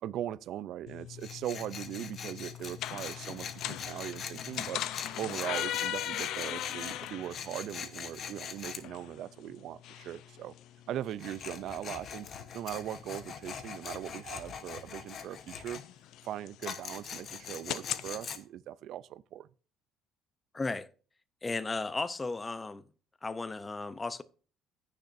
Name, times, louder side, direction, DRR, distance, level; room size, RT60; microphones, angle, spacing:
voice 1, 0.0-4.8 5.2-10.5 10.9-12.3 12.5-15.8 16.2-19.5, right 11 dB, 55° right, 0.4 m, -40 dB
sound 1, 0.9-18.1, left 13 dB, 65° left, 0.5 m, -41 dB
Tools, 1.2-8.8 11.1-15.8 16.6-18.4, left 7 dB, 40° left, 1.0 m, -43 dB
voice 2, 20.5-20.9 21.4-22.8 23.2-24.2, left 3 dB, 15° left, 0.6 m, -35 dB
16.0 x 6.6 x 2.6 m
cardioid pair, 150°, 0 cm